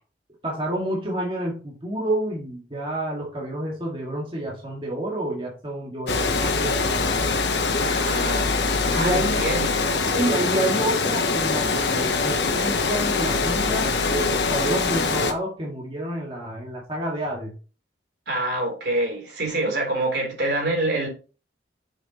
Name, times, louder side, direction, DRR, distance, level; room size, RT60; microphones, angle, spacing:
voice 1, 0.4-7.1 8.9-9.4 10.2-17.5, right 1 dB, 30° right, 1.9 m, -29 dB
Water, 6.1-15.3, left 4 dB, 75° left, 1.0 m, -23 dB
voice 2, 7.8-8.5 8.9-10.3 18.3-21.1, right 1 dB, 70° right, 3.5 m, -26 dB
7.2 x 6.4 x 3.0 m
head